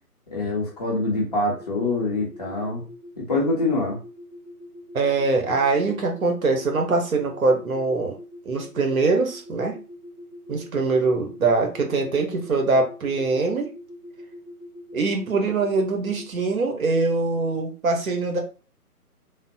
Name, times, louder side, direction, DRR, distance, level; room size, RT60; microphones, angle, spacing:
voice 1, 0.3-2.9 3.2-4.0, left 2 dB, 25° left, -3 dB, 0.6 m, -25 dB
sound 1, 1.5-16.3, left 1 dB, 15° right, 1.0 m, -43 dB
voice 2, 4.9-8.2 8.4-9.8 10.5-13.7 14.9-18.4, right 3 dB, 65° right, 3 dB, 1.0 m, -23 dB
3.4 x 2.1 x 2.7 m, 0.35 s
figure-of-eight pair, 150°, 46 cm